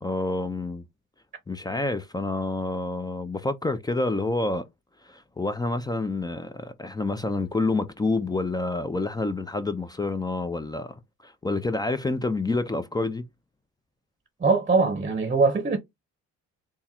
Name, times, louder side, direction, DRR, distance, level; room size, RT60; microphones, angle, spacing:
voice 1, 0.0-0.8 1.5-4.7 5.0-13.3, left 2 dB, 15° left, 0.5 m, -28 dB
voice 2, 14.4-15.8, right 4 dB, 25° right, 0.8 m, -22 dB
3.6 x 2.1 x 4.3 m
cardioid pair, 90°, 30 cm